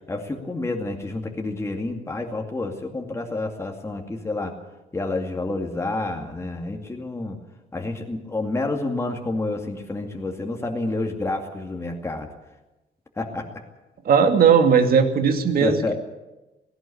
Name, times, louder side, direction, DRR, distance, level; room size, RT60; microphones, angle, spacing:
voice 1, 0.1-4.6 4.9-7.4 7.7-12.3 13.2-13.6 15.6-15.9, left 2 dB, 15° left, 2 dB, 2.3 m, -29 dB
voice 2, 14.0-15.9, right 6 dB, 60° right, 6 dB, 2.4 m, -17 dB
17.5 x 17.5 x 8.7 m, 1.0 s
cardioid pair, 140°, 17 cm